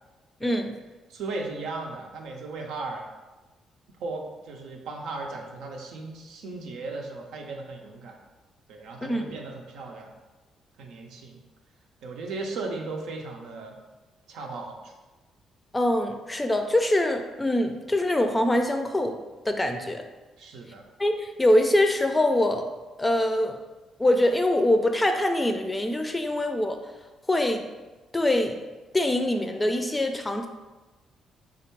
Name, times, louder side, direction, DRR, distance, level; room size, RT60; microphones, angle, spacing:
voice 1, 0.4-0.8 9.0-9.4 15.7-19.1 19.4-20.0 21.0-22.7 23.0-23.6 24.0-26.8 27.3-27.6 28.1-28.6 28.9-30.5, left 1 dB, 15° left, 5 dB, 0.4 m, -24 dB
voice 2, 1.1-3.0 4.0-8.2 8.7-10.1 10.8-11.4 12.0-13.8 14.3-14.9 20.4-20.8, right 3 dB, 85° right, 1 dB, 0.6 m, -36 dB
3.5 x 2.5 x 4.5 m, 1.2 s
cardioid pair, 90°, 0 cm